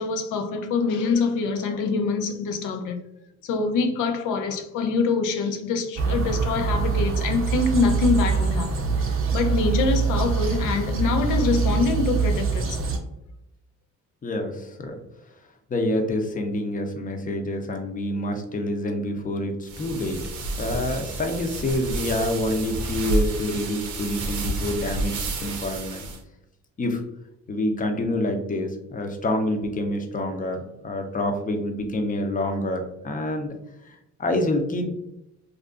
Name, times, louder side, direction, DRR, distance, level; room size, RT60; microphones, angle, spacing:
voice 1, 0.0-3.0 3.4-12.9, left 4 dB, 85° left, 0.5 m, -25 dB
sound 1, 6.0-13.0, right 5 dB, 45° right, 0.6 m, -24 dB
voice 2, 14.2-15.0 15.7-20.2 20.6-25.1 25.4-26.0 26.8-27.0 27.5-33.5 33.9-34.9, left 1 dB, 25° left, 0.5 m, -27 dB
sound 2, 19.7-26.2, right 2 dB, 80° right, 0.7 m, -30 dB
2.7 x 2.5 x 2.3 m
cardioid pair, 90°, 30 cm